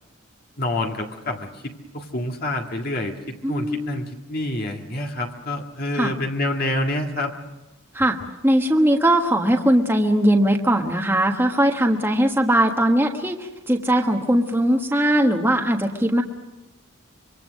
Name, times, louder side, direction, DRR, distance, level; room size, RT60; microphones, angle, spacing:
voice 1, 0.6-7.3, left 1 dB, 45° left, 2 dB, 1.8 m, -27 dB
voice 2, 3.4-4.1 5.9-6.1 7.9-8.2 8.4-16.2, right 1 dB, 10° right, 2 dB, 1.4 m, -20 dB
25.5 x 24.0 x 6.4 m, 1.0 s
head